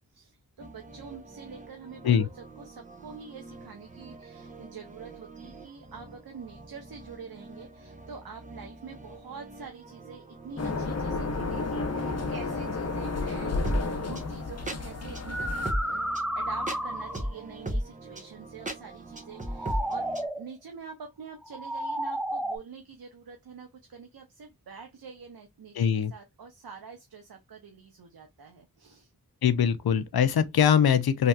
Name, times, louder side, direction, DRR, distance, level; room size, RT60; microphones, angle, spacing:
voice 1, 0.0-13.8 14.0-15.5 15.8-16.1 16.4-20.1 20.3-29.1, right 5 dB, 80° right, 0.6 m, -46 dB
sound 1, 0.6-20.3, right 1 dB, 20° right, 0.8 m, -40 dB
sound 2, 10.6-15.7, left 3 dB, 45° left, 0.7 m, -31 dB
sound 3, 14.1-14.3 15.1-17.4 19.3-20.5 21.4-22.6, right 1 dB, ahead, 0.3 m, -32 dB
voice 2, 25.7-26.1 29.4-31.3, left 8 dB, 85° left, 0.5 m, -22 dB
3.3 x 2.7 x 2.2 m
wide cardioid pair, 40°, 36 cm